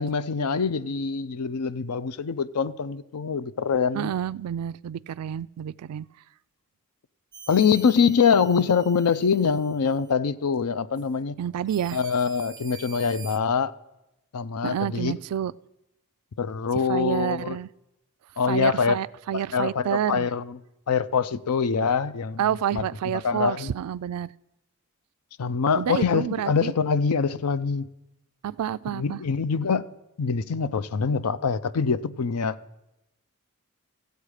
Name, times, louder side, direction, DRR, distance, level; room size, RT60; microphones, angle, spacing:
voice 1, 0.0-4.1 7.5-11.4 11.9-13.7 14.3-15.1 16.4-17.6 18.4-19.0 19.3-20.6 20.9-22.5 22.7-23.7 25.4-27.9 28.9-29.9 30.2-32.6, left 6 dB, 90° left, 0.5 m, -24 dB
voice 2, 3.9-6.1 11.4-12.0 14.6-15.5 16.9-17.7 18.5-20.3 22.4-24.3 25.8-26.7 28.4-29.2, right 9 dB, 85° right, 0.3 m, -29 dB
sound 1, 7.3-10.1 10.9-11.1 11.6-13.4, right 7 dB, 20° right, 0.4 m, -46 dB
15.0 x 8.0 x 4.9 m
head